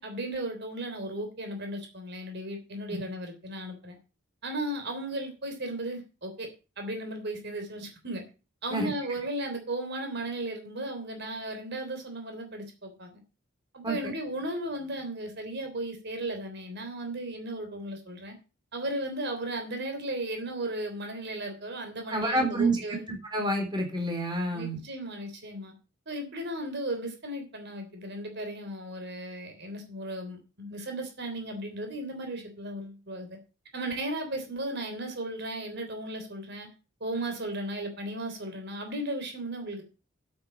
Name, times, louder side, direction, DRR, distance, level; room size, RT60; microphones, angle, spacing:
voice 1, 0.0-4.0 4.4-6.5 6.8-8.2 8.6-13.2 13.7-18.3 18.7-23.0 24.5-25.7 26.1-33.4 33.7-36.7 37.0-39.8, right 1 dB, 55° right, 5 dB, 3.3 m, -35 dB
voice 2, 22.1-22.8 23.1-24.8, right 2 dB, 20° right, 2 dB, 3.7 m, -28 dB
8.8 x 8.7 x 6.9 m, 0.32 s
head